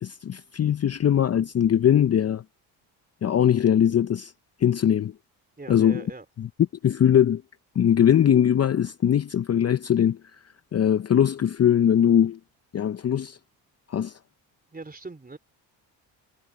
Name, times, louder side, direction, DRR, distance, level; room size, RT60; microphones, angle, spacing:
voice 1, 0.0-2.4 3.2-4.3 4.6-5.1 5.7-6.0 6.4-6.5 6.8-7.4 7.8-10.2 10.7-12.4 12.7-13.4 13.9-14.2, left 9 dB, 35° left, 0.7 m, -21 dB
voice 2, 5.6-6.3 14.7-15.4, right 3 dB, 20° right, 3.4 m, -40 dB
supercardioid pair, 70°, 43 cm